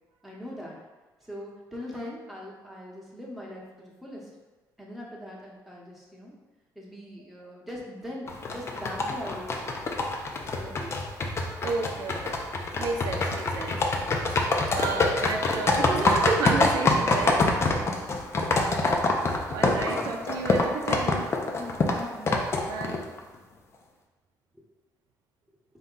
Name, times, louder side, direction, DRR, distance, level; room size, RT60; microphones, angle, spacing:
voice 1, 0.2-0.8 1.2-4.3 4.8-6.3 6.7-9.9 10.6-11.1 17.4-18.0 19.8-20.1 21.6-22.3, left 1 dB, ahead, -4 dB, 1.0 m, -41 dB
sound 1, 8.3-23.2, left 3 dB, 40° left, 0.5 m, -25 dB
voice 2, 11.6-12.4 12.8-13.8 14.7-17.4 19.5-21.3 22.7-23.0, right 4 dB, 80° right, 1 dB, 0.5 m, -31 dB
4.1 x 2.3 x 3.8 m, 1.2 s
cardioid pair, 100°, 7 cm